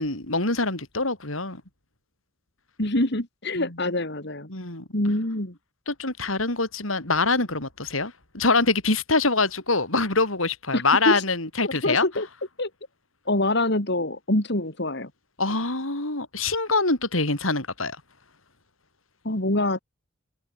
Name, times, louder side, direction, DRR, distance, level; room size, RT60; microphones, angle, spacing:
voice 1, 0.0-1.6 3.6-3.7 4.5-4.8 5.9-12.0 15.4-18.0, left 3 dB, 90° left, 6.5 m, -24 dB
voice 2, 2.8-4.5 4.9-5.6 10.7-11.2 11.6-12.3 12.6-12.7 13.3-15.1 19.2-19.8, left 1 dB, 55° left, 3.6 m, -25 dB
head